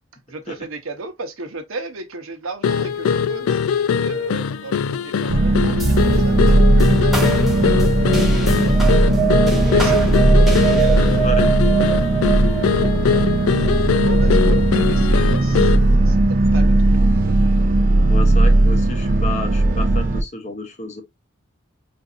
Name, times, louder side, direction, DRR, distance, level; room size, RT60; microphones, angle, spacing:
voice 1, 0.3-7.9 9.7-11.3 11.6-12.2 12.9-16.2 16.5-17.3 19.7-20.0, right 3 dB, 70° right, 0.8 m, -35 dB
sound 1, 2.6-15.9, left 7 dB, 85° left, 0.3 m, -22 dB
sound 2, 5.3-20.2, right 2 dB, 40° right, 0.5 m, -17 dB
sound 3, 5.8-14.5, right 3 dB, ahead, 0.8 m, -23 dB
voice 2, 10.7-11.5 18.1-21.0, left 2 dB, 35° left, 0.7 m, -31 dB
3.9 x 2.6 x 2.4 m
head